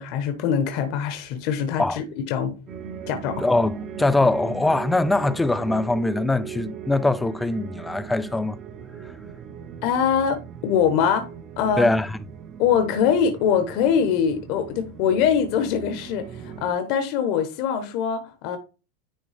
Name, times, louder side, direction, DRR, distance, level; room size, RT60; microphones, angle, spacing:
voice 1, 0.0-2.5 3.1-3.4 9.8-11.9 12.6-18.6, left 7 dB, 40° left, 1.0 m, -23 dB
sound 1, 2.7-16.7, right 8 dB, 20° right, 0.7 m, -38 dB
voice 2, 3.4-8.6 11.8-12.2, left 2 dB, 5° left, 0.3 m, -22 dB
10.0 x 3.5 x 3.4 m
supercardioid pair, 175°, 0 cm